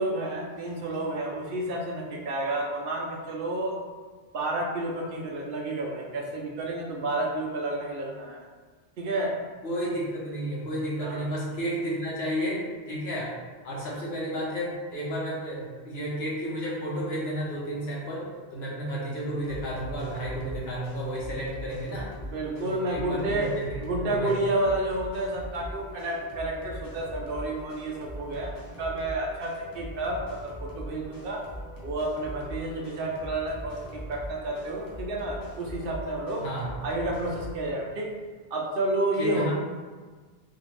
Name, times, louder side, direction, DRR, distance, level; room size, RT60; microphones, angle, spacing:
voice 1, 0.0-3.7 4.3-8.4 9.0-9.3 11.0-11.2 22.3-23.5 23.8-31.4 31.8-36.5 36.8-38.1 38.5-39.5, right 2 dB, 65° right, -1 dB, 0.7 m, -30 dB
voice 2, 9.6-13.4 13.6-22.1 22.6-24.4 36.4-36.7 39.2-39.5, equal, 85° left, -5 dB, 1.1 m, -32 dB
sound 1, 19.3-37.5, equal, 25° left, 0.6 m, -41 dB
2.7 x 2.5 x 3.1 m, 1.4 s
omnidirectional pair, 1.0 m